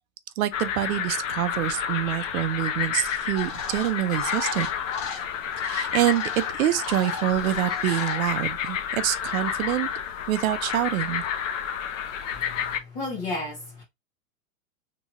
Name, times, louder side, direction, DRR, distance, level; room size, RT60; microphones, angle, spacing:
voice 1, 0.4-4.7 5.6-9.9 10.3-11.2, right 13 dB, 85° right, 0.6 m, -26 dB
sound 1, 0.5-12.8, left 8 dB, 65° left, 0.6 m, -30 dB
sound 2, 3.4-8.5, left 4 dB, 35° left, 0.9 m, -38 dB
voice 2, 12.3-13.8, left 2 dB, 15° left, 0.4 m, -34 dB
2.9 x 2.2 x 2.9 m
supercardioid pair, 160°, 41 cm